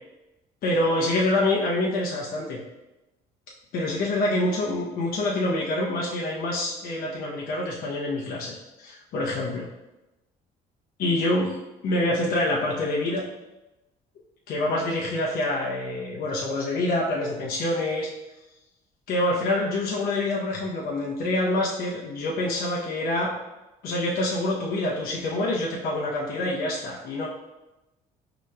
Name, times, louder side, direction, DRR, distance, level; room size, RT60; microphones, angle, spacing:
voice 1, 0.6-2.6 3.7-9.7 11.0-11.5 11.8-13.2 14.5-18.1 19.1-23.3 23.8-27.3, left 1 dB, 60° left, -4 dB, 0.7 m, -26 dB
5.0 x 2.9 x 2.2 m, 1.0 s
cardioid pair, 110°, 17 cm